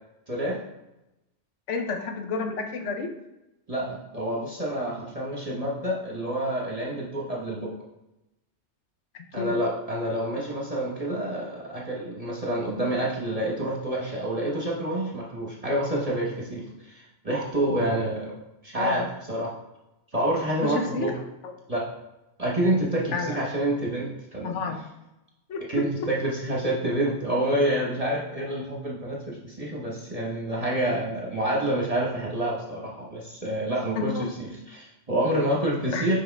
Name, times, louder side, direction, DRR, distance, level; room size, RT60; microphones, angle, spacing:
voice 1, 0.3-0.6 3.7-7.7 9.3-18.3 18.6-19.5 20.1-21.1 21.7-21.8 22.4-24.6 25.7-34.5 34.7-36.2, right 1 dB, 30° right, -3 dB, 1.1 m, -28 dB
voice 2, 1.7-3.1 9.1-9.5 18.7-19.1 20.6-21.1 21.4-21.5 23.1-23.4 24.4-24.8 25.5-26.1 34.0-34.3 35.9-36.1, left 4 dB, 70° left, 5 dB, 1.1 m, -30 dB
6.2 x 5.0 x 3.5 m, 0.94 s
omnidirectional pair, 1.3 m